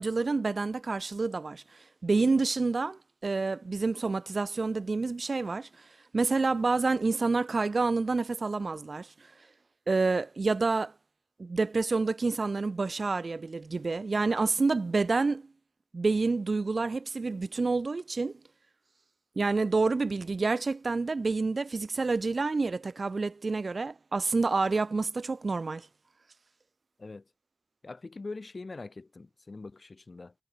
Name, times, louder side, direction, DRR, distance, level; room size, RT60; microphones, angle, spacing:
voice 1, 0.0-1.6 2.0-5.7 6.1-9.1 9.9-10.9 11.4-15.4 15.9-18.3 19.4-25.9, right 3 dB, 75° right, 0.5 m, -28 dB
voice 2, 27.8-30.3, left 3 dB, 65° left, 1.0 m, -43 dB
wide cardioid pair, 45°, 0 cm